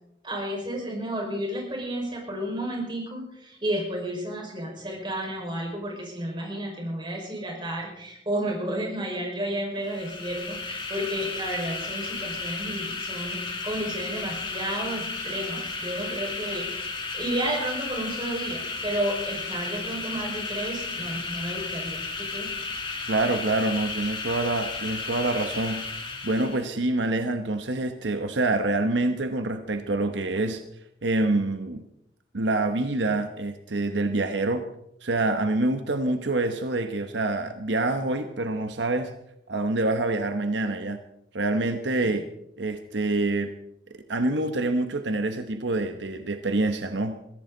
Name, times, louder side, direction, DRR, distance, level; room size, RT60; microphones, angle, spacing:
voice 1, 0.2-22.5, right 1 dB, 25° right, 0 dB, 5.1 m, -32 dB
sound 1, 9.8-26.7, left 4 dB, 25° left, 2.5 m, -34 dB
voice 2, 23.1-25.9 26.2-30.6 31.0-31.8 32.3-34.6 35.0-39.1 39.5-41.0 41.3-42.3 42.6-43.5 44.1-47.2, right 2 dB, 85° right, 7 dB, 1.1 m, -26 dB
22.0 x 15.5 x 4.0 m, 0.77 s
head